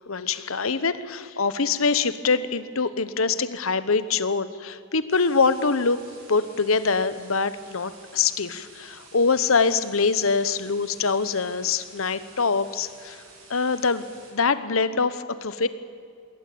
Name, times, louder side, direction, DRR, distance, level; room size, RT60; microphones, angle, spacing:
voice 1, 0.1-6.0 6.3-13.2 13.5-14.0 14.3-15.7, left 4 dB, 85° left, 14 dB, 1.1 m, -24 dB
sound 1, 5.1-14.3, right 3 dB, 75° right, 7.2 m, -50 dB
21.0 x 18.5 x 8.7 m, 2.3 s
head